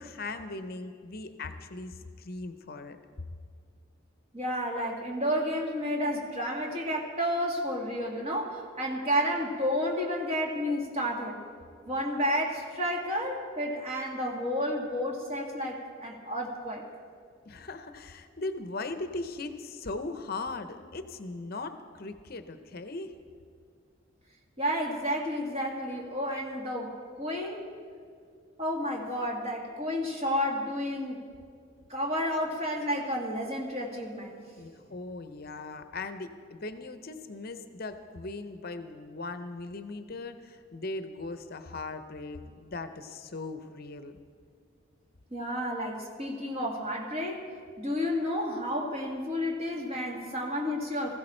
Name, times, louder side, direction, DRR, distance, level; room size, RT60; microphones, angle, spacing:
voice 1, 0.0-3.0 17.5-23.1 34.6-44.2, left 3 dB, 50° left, 9 dB, 0.7 m, -39 dB
voice 2, 4.3-11.4 11.9-16.8 24.6-27.6 28.6-31.2 31.9-34.4 45.3-47.5 47.8-51.2, equal, 30° right, -1 dB, 2.1 m, -31 dB
19.5 x 15.0 x 4.4 m, 2.2 s
head